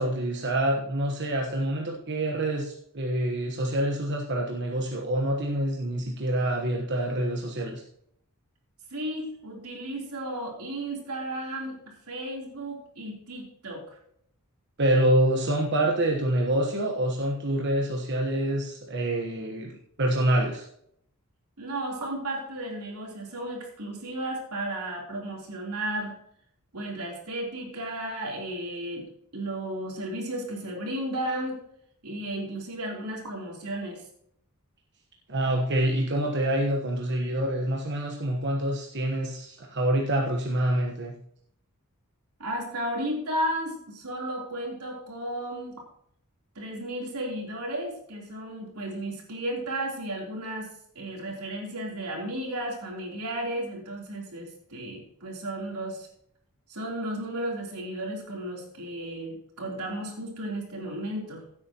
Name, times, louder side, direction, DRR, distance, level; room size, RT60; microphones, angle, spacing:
voice 1, 0.0-7.8 14.8-19.7 20.0-20.7 35.3-41.1, right 1 dB, 50° right, 0 dB, 1.3 m, -26 dB
voice 2, 8.9-11.8 12.1-14.0 21.6-26.2 26.7-29.1 29.3-31.6 32.0-34.0 42.4-45.7 46.6-50.7 51.0-56.1 56.7-61.4, right 1 dB, 85° right, -1 dB, 3.5 m, -34 dB
16.0 x 8.5 x 3.0 m, 0.70 s
head